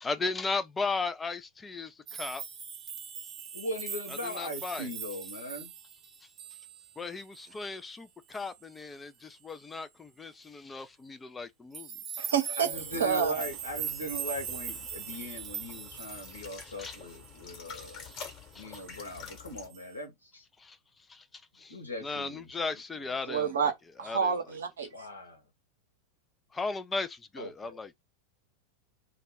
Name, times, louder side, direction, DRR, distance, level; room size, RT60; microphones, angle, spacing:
voice 1, 0.0-2.4 4.2-4.9 7.0-11.9 16.6-17.0 17.7-18.6 20.6-20.8 21.1-23.7 24.0-24.3 26.5-28.0, left 4 dB, 15° left, 0.3 m, -37 dB
sound 1, 2.1-7.0 7.3-7.7 8.3-8.5 11.7-17.4 17.8-18.3 18.7-19.1 19.7-19.9, right 8 dB, 30° right, 0.7 m, -41 dB
voice 2, 3.5-5.7 12.5-18.1 18.5-20.4 21.7-23.5 24.9-25.4 27.4-27.8, equal, 80° left, 1.0 m, -40 dB
voice 3, 12.2-12.7 13.0-13.4 23.3-23.7 24.0-24.9, right 7 dB, 65° right, 0.7 m, -28 dB
sound 2, 12.7-19.7, left 6 dB, 40° left, 1.1 m, -48 dB
2.2 x 2.1 x 3.4 m
figure-of-eight pair, 90°, 0 cm